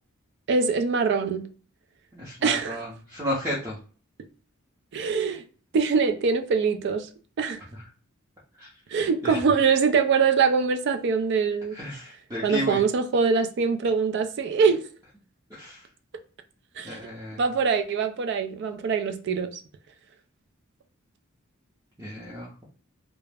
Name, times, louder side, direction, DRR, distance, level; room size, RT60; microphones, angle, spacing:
voice 1, 0.5-1.4 2.4-2.8 4.9-5.4 5.7-7.1 7.4-7.6 8.9-11.8 12.4-14.8 16.8-17.0 17.4-19.6, right 5 dB, 60° right, 0.3 m, -23 dB
voice 2, 2.1-3.8 8.6-8.7 9.2-9.4 11.7-12.8 15.5-15.8 16.8-17.4 22.0-22.6, equal, 15° right, 0.6 m, -33 dB
2.3 x 2.0 x 3.2 m
head